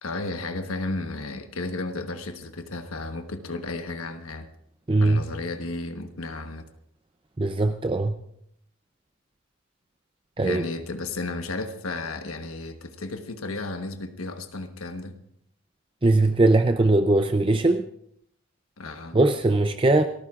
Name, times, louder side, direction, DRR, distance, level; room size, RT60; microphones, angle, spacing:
voice 1, 0.0-4.5 5.0-6.6 10.4-15.1 18.8-19.2, left 2 dB, 80° left, 1.2 m, -33 dB
voice 2, 4.9-5.2 7.4-8.1 10.4-10.6 16.0-17.8 19.1-20.0, right 2 dB, 25° right, 0.5 m, -20 dB
29.5 x 14.0 x 2.5 m
head